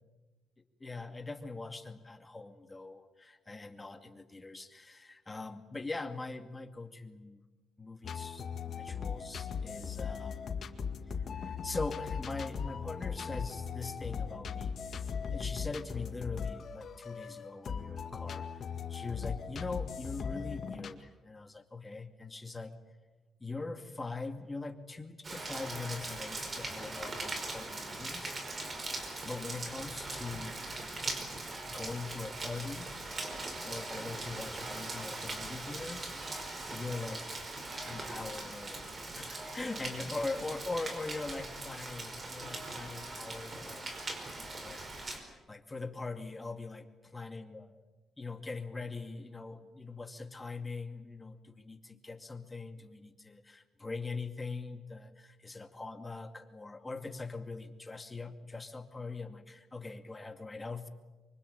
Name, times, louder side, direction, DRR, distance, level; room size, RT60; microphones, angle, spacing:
voice 1, 0.8-7.4 7.8-10.6 11.3-15.0 15.3-22.8 23.4-28.4 29.2-30.6 31.7-32.9 33.6-36.0 36.7-37.2 37.8-43.9 44.6-46.8 47.1-47.8 48.2-60.9, left 3 dB, 20° left, 8 dB, 2.4 m, -42 dB
sound 1, 8.0-20.9, left 6 dB, 55° left, 1.9 m, -38 dB
Rain, 25.2-45.2, right 2 dB, 35° right, 5.2 m, -40 dB
25.0 x 24.5 x 8.9 m, 1.2 s
cardioid pair, 90°, 0 cm